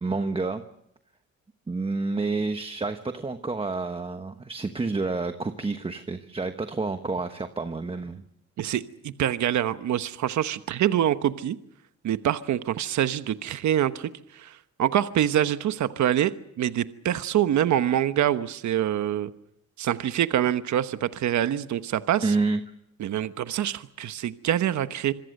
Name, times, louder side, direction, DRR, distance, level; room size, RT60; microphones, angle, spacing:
voice 1, 0.0-0.6 1.7-8.2 22.2-22.6, right 3 dB, 20° right, 7 dB, 1.1 m, -29 dB
voice 2, 8.6-11.6 12.0-19.3 19.8-22.3 23.0-25.1, right 11 dB, 75° right, 11 dB, 1.1 m, -25 dB
26.5 x 23.0 x 6.6 m, 0.77 s
cardioid pair, 140°, 29 cm